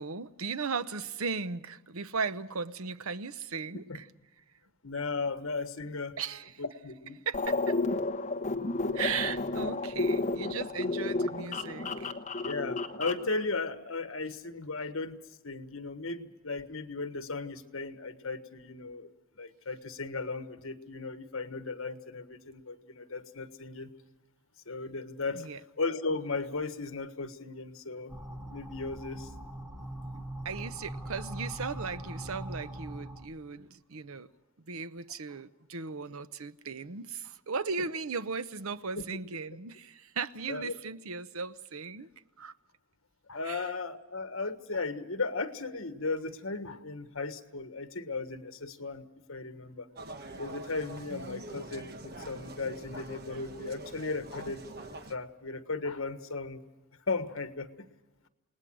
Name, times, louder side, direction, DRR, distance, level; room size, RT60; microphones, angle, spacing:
voice 1, 0.0-4.1 6.2-6.5 7.3-7.8 8.9-12.1 25.3-25.6 30.4-34.3 34.7-42.1 42.4-42.5 43.4-43.7 51.1-51.5, right 5 dB, 85° right, 0.9 m, -37 dB
voice 2, 4.8-6.2 6.6-7.2 12.4-15.2 15.4-19.1 19.4-23.9 24.6-25.5 25.8-28.1 28.5-29.3 38.9-39.0 40.5-40.7 43.3-49.9 50.4-54.7 55.1-56.6 57.1-57.7, left 3 dB, 75° left, 1.5 m, -36 dB
sound 1, 7.3-13.3, left 3 dB, 35° left, 1.2 m, -31 dB
sound 2, 28.1-33.3, right 1 dB, 5° right, 1.5 m, -41 dB
sound 3, 50.0-55.2, right 2 dB, 45° right, 1.3 m, -44 dB
29.0 x 19.0 x 6.2 m
head